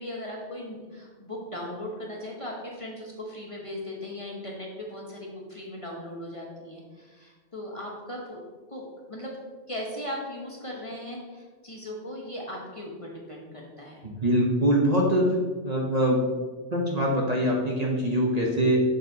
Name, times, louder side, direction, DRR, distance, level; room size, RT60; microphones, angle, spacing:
voice 1, 0.0-8.4 8.7-8.8 9.1-9.4 9.7-14.0, left 1 dB, 30° left, -2 dB, 0.9 m, -38 dB
voice 2, 14.0-15.3 15.6-16.2 16.7-18.8, equal, 40° right, -2 dB, 0.8 m, -23 dB
6.6 x 6.6 x 2.7 m, 1.4 s
omnidirectional pair, 1.2 m